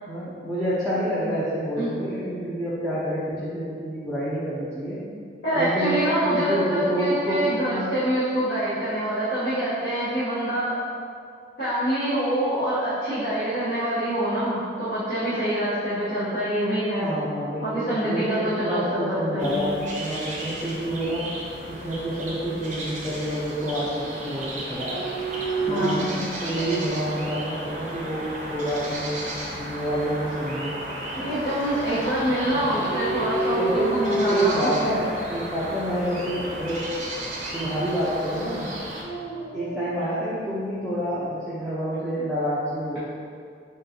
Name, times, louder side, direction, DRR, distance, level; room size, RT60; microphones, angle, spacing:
voice 1, 0.1-5.0 5.5-7.9 17.0-21.3 21.7-25.0 25.6-26.1 26.4-29.2 29.5-30.8 32.5-32.7 33.6-33.9 34.3-36.9 37.5-38.7 39.5-43.0, equal, ahead, -11 dB, 0.5 m, -28 dB
voice 2, 5.4-10.8 11.6-17.1 17.6-19.6 25.7-26.2 31.1-34.7, right 1 dB, 65° left, -14 dB, 1.1 m, -25 dB
sound 1, 19.4-39.0, right 1 dB, 40° right, 0.6 m, -34 dB
Dog, 24.8-27.1 27.7-28.4 32.6-34.9 35.7-36.1 38.7-40.0, right 2 dB, 75° right, 0.7 m, -30 dB
3.9 x 3.7 x 2.8 m, 2.3 s
head